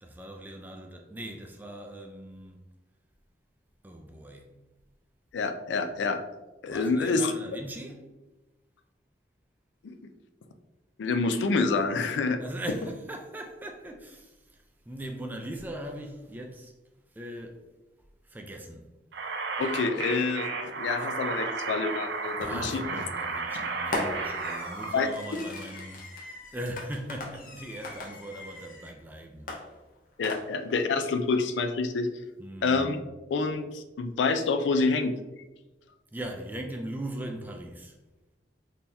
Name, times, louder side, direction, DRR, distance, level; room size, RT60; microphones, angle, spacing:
voice 1, 0.0-2.7 3.8-4.5 6.7-8.1 12.4-16.7 17.1-17.6 18.2-18.9 22.4-29.5 32.4-33.1 36.1-38.0, right 1 dB, 10° right, 0.3 m, -40 dB
voice 2, 5.3-6.2 6.6-7.3 9.8-10.0 11.0-12.4 19.6-22.8 23.5-23.7 24.9-25.1 30.2-32.1 32.6-33.0 33.3-35.1, left 4 dB, 90° left, 0.4 m, -27 dB
sound 1, 19.1-25.0, right 4 dB, 70° right, 0.5 m, -33 dB
Fireworks, 22.4-22.8 23.9-29.0 29.5-30.8, left 2 dB, 50° left, 0.7 m, -39 dB
3.7 x 2.8 x 2.6 m
head